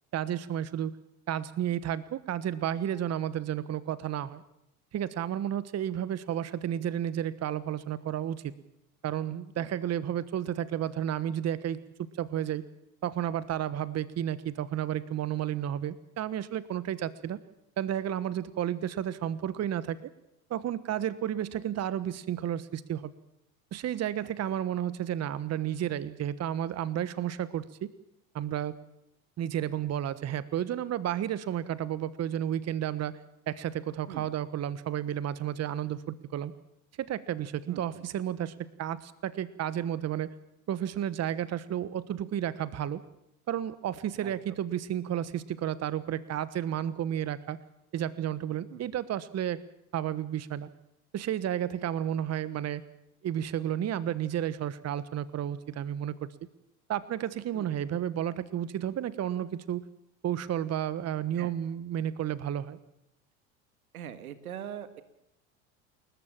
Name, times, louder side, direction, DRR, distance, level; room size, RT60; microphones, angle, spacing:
voice 1, 0.1-0.9 1.3-4.4 4.9-8.5 9.0-12.6 13.0-17.4 17.8-20.1 20.5-23.1 23.7-27.9 28.3-28.8 29.4-33.2 33.5-36.5 37.0-40.3 40.7-43.0 43.5-47.6 47.9-49.6 49.9-50.7 51.1-52.8 53.2-56.3 56.9-59.8 60.2-62.8, right 10 dB, 35° right, 16 dB, 1.3 m, -32 dB
voice 2, 24.2-24.6 34.1-34.3 37.7-38.1 44.2-44.6 48.7-48.8 57.5-57.7 61.3-61.5 63.9-65.0, right 10 dB, 85° right, 12 dB, 1.7 m, -43 dB
29.5 x 14.0 x 7.5 m, 0.81 s
hypercardioid pair, 80°, 42 cm